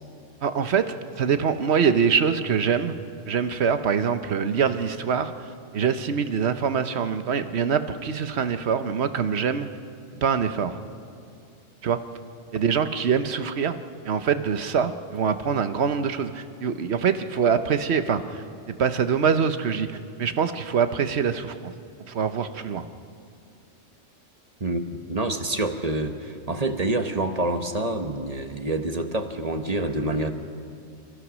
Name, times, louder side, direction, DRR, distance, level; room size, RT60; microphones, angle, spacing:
voice 1, 0.4-2.9 3.3-5.5 5.7-9.7 10.2-10.8 11.8-12.0 12.5-18.4 18.8-19.9 20.2-21.7 22.1-22.9, right 6 dB, 65° right, 10 dB, 1.2 m, -24 dB
voice 2, 24.6-30.3, right 2 dB, 35° right, 7 dB, 1.1 m, -27 dB
28.5 x 15.0 x 6.2 m, 2.3 s
omnidirectional pair, 1.2 m